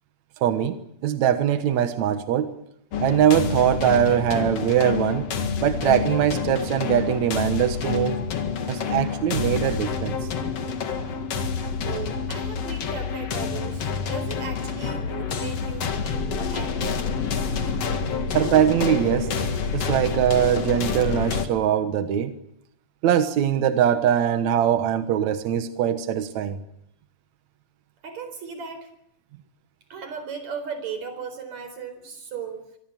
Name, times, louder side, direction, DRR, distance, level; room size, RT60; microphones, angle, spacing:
voice 1, 0.4-2.5 3.0-5.3 5.6-8.2 8.7-10.2 18.3-19.3 19.7-22.3 23.0-26.6, right 10 dB, 70° right, 9 dB, 1.8 m, -22 dB
sound 1, 2.9-21.5, left 5 dB, 45° left, 2.3 m, -28 dB
voice 2, 11.8-17.0 28.0-28.9 29.9-32.7, right 6 dB, 40° right, 9 dB, 5.3 m, -36 dB
25.0 x 22.5 x 7.5 m, 0.75 s
omnidirectional pair, 4.9 m